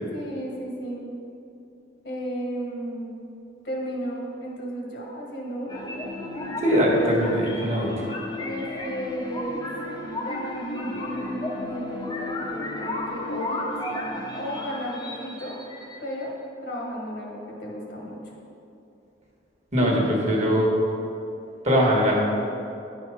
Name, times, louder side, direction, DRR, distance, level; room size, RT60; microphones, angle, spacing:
voice 1, 0.1-1.1 2.0-3.2 3.6-5.8 8.4-9.7 10.1-13.7 14.4-15.6 16.0-16.3 16.6-18.2, equal, 60° left, -2 dB, 1.4 m, -34 dB
sound 1, 5.7-16.3, left 2 dB, 20° left, 0.7 m, -33 dB
voice 2, 6.6-7.9 19.7-20.7 21.6-22.1, equal, 35° right, -2 dB, 1.3 m, -21 dB
9.6 x 4.4 x 4.7 m, 2.8 s
head